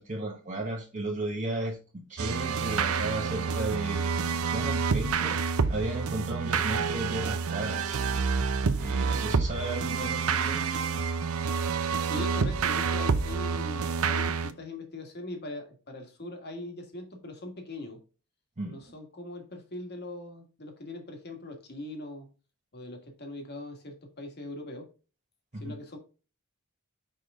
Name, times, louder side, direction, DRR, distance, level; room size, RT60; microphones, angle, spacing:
voice 1, 0.0-8.0 8.8-10.7 18.6-18.8 25.5-25.8, right 2 dB, 35° right, 1.1 m, -35 dB
sound 1, 2.2-14.5, right 5 dB, 90° right, 0.6 m, -28 dB
voice 2, 12.0-18.0 18.6-22.3 22.7-24.9 25.5-26.0, left 2 dB, 50° left, 1.7 m, -41 dB
5.8 x 4.9 x 3.6 m
head